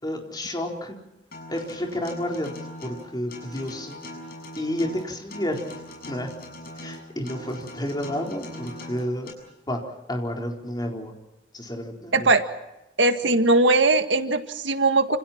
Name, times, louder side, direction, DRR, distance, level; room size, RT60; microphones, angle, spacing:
voice 1, 0.0-1.0 1.5-2.5 2.8-4.0 4.6-5.6 6.1-6.3 6.7-9.3 9.7-9.8 10.1-11.1 11.5-12.3, left 1 dB, 20° left, 1 dB, 4.3 m, -30 dB
Acoustic guitar, 1.3-9.3, left 1 dB, 55° left, 7.2 m, -40 dB
voice 2, 12.1-12.5 13.0-15.2, right 2 dB, 75° right, 8 dB, 1.9 m, -20 dB
29.0 x 28.0 x 4.4 m, 0.94 s
head